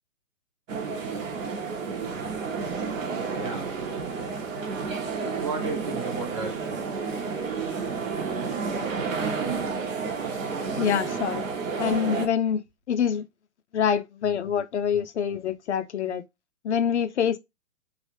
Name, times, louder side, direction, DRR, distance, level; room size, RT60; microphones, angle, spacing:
sound 1, 0.7-12.3, right 5 dB, 65° right, 1.1 m, -31 dB
voice 1, 3.3-4.5 5.4-6.6, right 4 dB, 20° right, 0.6 m, -35 dB
voice 2, 10.8-11.4 11.8-13.2 13.7-16.2 16.6-17.4, left 8 dB, 55° left, 0.5 m, -25 dB
3.1 x 2.5 x 2.9 m
hypercardioid pair, 160°, 42 cm